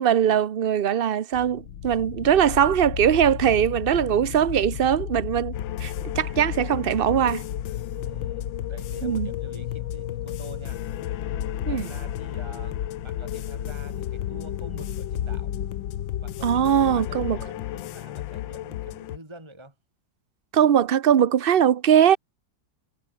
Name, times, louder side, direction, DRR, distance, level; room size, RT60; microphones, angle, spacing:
voice 1, 0.0-5.5 5.8-7.4 9.0-9.3 11.7-11.9 16.4-17.4 20.5-22.2, right 9 dB, 65° right, 0.5 m, -21 dB
sound 1, 1.3-17.5, left 9 dB, 70° left, 2.0 m, -34 dB
sound 2, 5.5-19.2, left 15 dB, 85° left, 1.4 m, -35 dB
voice 2, 7.9-10.8 11.6-15.5 16.2-19.7, right 1 dB, 15° right, 3.3 m, -46 dB
omnidirectional pair, 2.0 m